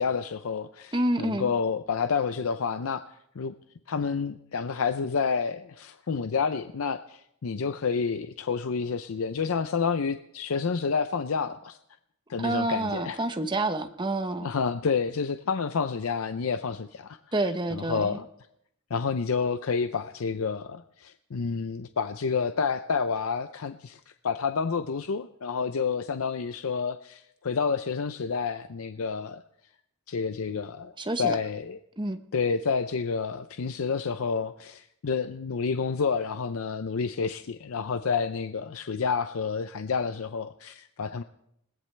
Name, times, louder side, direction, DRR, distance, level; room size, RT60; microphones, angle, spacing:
voice 1, 0.0-3.0 3.4-3.5 3.9-11.8 12.3-13.2 14.4-18.3 18.9-29.4 30.1-30.9 31.2-31.8 32.3-41.2, left 5 dB, 75° left, 10 dB, 0.5 m, -29 dB
voice 2, 0.9-1.5 12.4-14.5 17.3-18.2 31.0-31.4 32.0-32.2, right 2 dB, 20° right, 8 dB, 0.9 m, -28 dB
21.0 x 17.5 x 3.3 m, 0.76 s
head